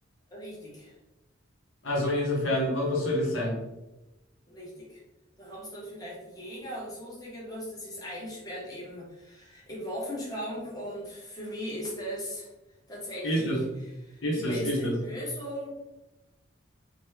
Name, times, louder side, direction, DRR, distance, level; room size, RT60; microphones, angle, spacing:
voice 1, 0.3-0.9 4.5-5.0 5.4-12.5 12.9-15.7, equal, 20° left, -6 dB, 0.9 m, -38 dB
voice 2, 1.8-3.6 13.2-13.6 14.2-14.9, left 1 dB, 75° left, -3 dB, 0.9 m, -27 dB
2.9 x 2.1 x 3.4 m, 1.0 s
head